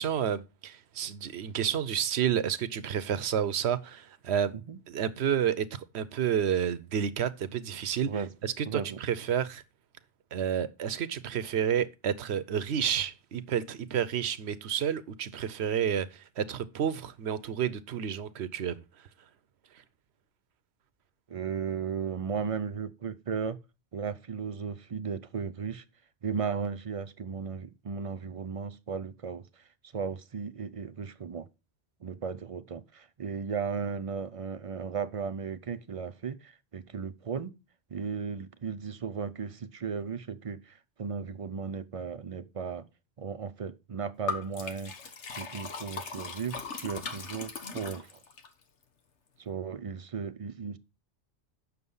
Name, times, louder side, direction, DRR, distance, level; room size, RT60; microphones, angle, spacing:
voice 1, 0.0-4.5 4.9-8.1 8.4-9.6 10.3-18.8, right 9 dB, 70° right, 1.0 m, -30 dB
voice 2, 8.7-9.0 21.3-23.6 23.9-25.8 26.2-29.5 29.9-31.5 32.0-37.5 37.9-42.9 43.2-45.0 45.4-48.2 49.4-50.8, right 6 dB, 40° right, 0.5 m, -35 dB
Liquid, 44.3-48.5, left 5 dB, 90° left, 1.5 m, -38 dB
8.2 x 6.3 x 5.4 m
omnidirectional pair, 1.2 m